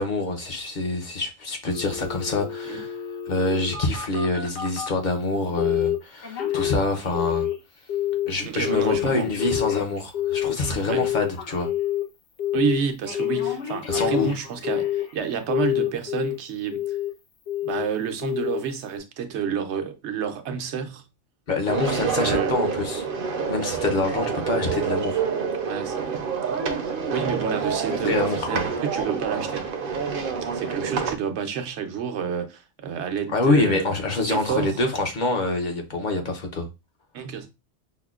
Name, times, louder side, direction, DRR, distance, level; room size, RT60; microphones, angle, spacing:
voice 1, 0.0-3.0 3.3-7.5 8.3-11.7 13.9-14.3 21.5-23.0 23.5-25.2 28.0-28.7 33.3-36.7, left 2 dB, 50° left, 0.7 m, -26 dB
Telephone, 1.7-5.0 5.6-6.0 6.2-7.6 7.9-8.3 8.6-12.0 12.4-12.8 13.1-15.1 15.5-16.4 16.7-17.1 17.5-17.9 18.2-18.6 19.0-19.1, left 12 dB, 85° left, 1.1 m, -27 dB
voice 2, 8.4-9.3 10.9-11.0 12.5-17.0 17.6-21.0 22.0-22.6 25.7-26.2 27.1-29.6 30.5-33.9 34.3-34.8 37.1-37.5, right 7 dB, 85° right, 0.9 m, -29 dB
sound 1, 21.7-31.2, right 6 dB, 60° right, 0.7 m, -27 dB
5.6 x 2.1 x 2.3 m
omnidirectional pair, 1.1 m